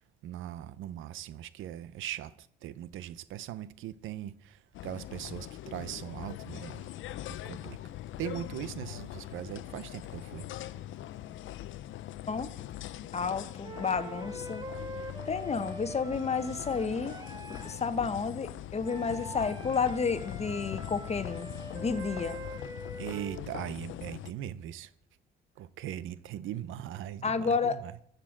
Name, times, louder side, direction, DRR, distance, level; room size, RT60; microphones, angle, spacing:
voice 1, 0.2-6.8 7.4-7.8 8.2-10.5 23.0-24.9 25.6-27.9, right 11 dB, 85° right, 0.7 m, -40 dB
sound 1, 4.7-24.3, left 13 dB, 75° left, 0.6 m, -42 dB
voice 2, 13.1-14.6 15.3-17.1 17.5-21.5 21.7-22.4 27.2-27.8, left 5 dB, 35° left, 1.0 m, -31 dB
sound 2, 13.6-17.9 18.8-23.5, right 1 dB, 20° right, 1.6 m, -44 dB
14.0 x 6.8 x 7.3 m
cardioid pair, 90°, 20 cm